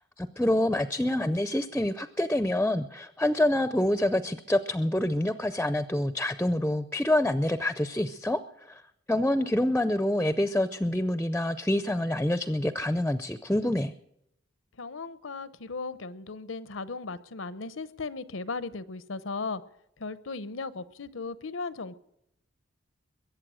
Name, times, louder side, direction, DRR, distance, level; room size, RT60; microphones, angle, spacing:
voice 1, 0.2-8.4 8.7-8.8 9.1-13.9, left 1 dB, 5° left, 12 dB, 0.5 m, -26 dB
voice 2, 14.8-19.6 20.0-21.9, left 4 dB, 80° left, 16 dB, 0.8 m, -36 dB
22.0 x 8.4 x 6.3 m, 0.79 s
head